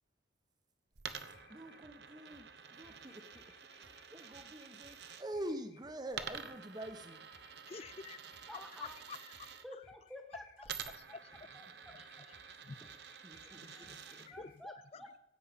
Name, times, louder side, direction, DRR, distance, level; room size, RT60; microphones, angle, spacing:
sound 1, 1.0-14.6, left 4 dB, 50° left, 2.5 m, -66 dB
Coin (dropping), 1.0-5.2 6.1-9.6 10.6-14.3, right 7 dB, 60° right, 0.9 m, -49 dB
voice 1, 1.5-7.3 13.2-14.2, right 1 dB, 20° right, 8 dB, 1.1 m, -46 dB
voice 2, 7.7-8.2 8.5-9.5 9.8-9.9 10.9-11.6 11.9-12.1 12.6-12.8 13.5-15.2, left 5 dB, 30° left, 18 dB, 0.4 m, -50 dB
voice 3, 8.5-9.0 9.6-10.7 11.5-12.0 13.4-15.2, left 1 dB, ahead, 2 dB, 1.6 m, -52 dB
15.5 x 9.0 x 5.3 m, 0.77 s
head